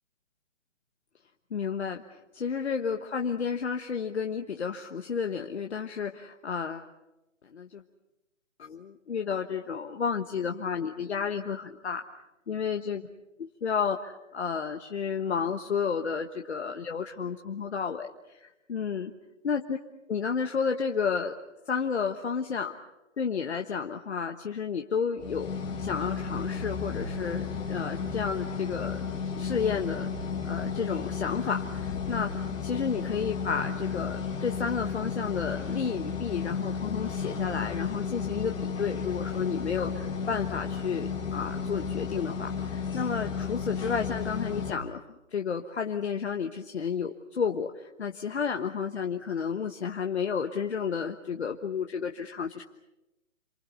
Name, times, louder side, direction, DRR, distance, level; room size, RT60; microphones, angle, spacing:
voice 1, 1.5-6.9 7.4-7.8 8.6-12.0 12.5-13.0 13.4-19.1 19.4-19.8 20.1-21.3 21.7-22.7 23.2-25.5 25.8-29.0 29.4-30.1 30.4-45.0 45.3-52.6, left 6 dB, 60° left, 5 dB, 1.3 m, -31 dB
sound 1, 25.2-44.7, left 6 dB, 10° left, 3.3 m, -33 dB
28.0 x 24.0 x 6.9 m, 0.98 s
figure-of-eight pair, 145°, 38 cm